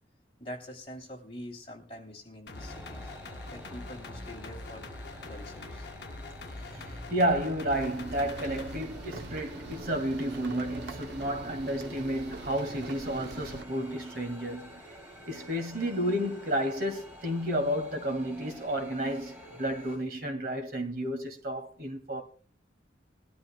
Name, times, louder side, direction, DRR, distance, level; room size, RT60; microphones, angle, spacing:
voice 1, 0.4-3.1 3.5-4.9 5.2-5.9, equal, 30° left, 2.9 m, -45 dB
sound 1, 2.5-8.8, left 3 dB, 60° left, 0.8 m, -44 dB
sound 2, 2.5-20.0, equal, 10° right, 2.9 m, -47 dB
voice 2, 6.7-14.8 15.3-22.2, equal, 50° right, 1.8 m, -31 dB
sound 3, 7.7-13.6, right 3 dB, 65° right, 0.7 m, -44 dB
21.0 x 12.5 x 2.2 m
head